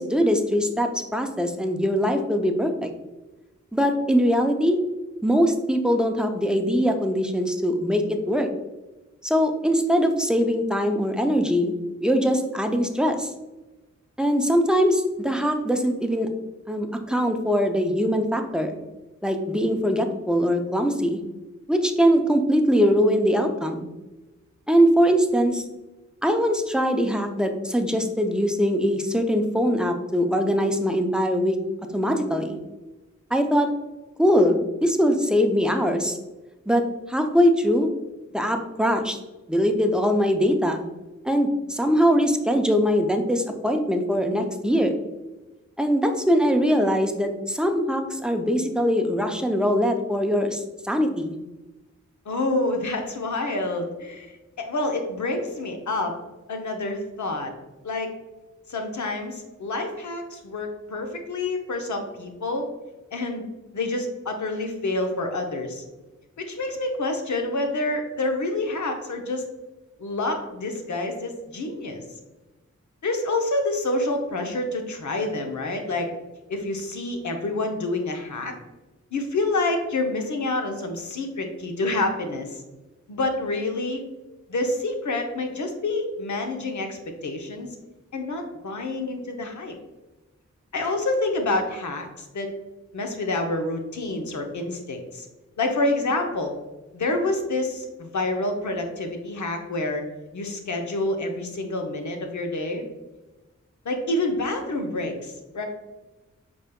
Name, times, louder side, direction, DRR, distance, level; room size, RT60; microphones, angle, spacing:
voice 1, 0.0-2.9 3.7-4.8 5.2-8.5 9.2-11.7 12.0-13.3 14.2-16.3 16.7-18.8 19.2-21.2 21.7-23.9 24.7-25.6 26.2-31.6 31.9-32.6 33.3-33.7 34.2-36.2 36.7-36.8 37.1-37.9 38.3-39.2 39.5-40.8 41.2-45.0 45.8-51.3, equal, 5° right, 5 dB, 0.5 m, -22 dB
voice 2, 52.3-56.2 56.5-57.5 57.8-58.1 58.7-62.7 63.1-63.5 63.7-65.8 66.4-69.4 70.0-72.0 73.0-76.1 76.5-78.5 79.1-82.6 83.1-84.0 84.5-87.7 88.1-89.7 90.7-92.5 92.9-95.3 95.6-96.5 96.9-100.0 100.3-102.8 103.8-105.6, left 2 dB, 75° left, 4 dB, 0.7 m, -28 dB
5.0 x 3.4 x 2.2 m, 1.1 s
cardioid pair, 50°, 30 cm